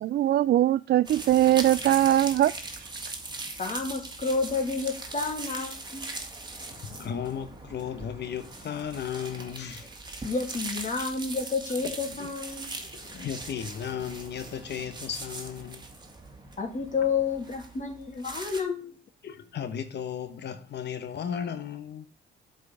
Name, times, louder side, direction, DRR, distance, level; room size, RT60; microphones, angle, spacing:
voice 1, 0.0-2.9, right 13 dB, 55° right, 0.4 m, -22 dB
sound 1, 1.0-18.6, right 2 dB, 20° right, 2.0 m, -40 dB
voice 2, 3.6-6.1 10.2-12.8 16.6-19.0, left 4 dB, 40° left, 2.9 m, -30 dB
voice 3, 6.8-9.9 11.8-12.3 12.8-15.9 19.2-22.1, left 8 dB, 60° left, 1.1 m, -35 dB
7.8 x 4.7 x 6.9 m
cardioid pair, 90°, 20 cm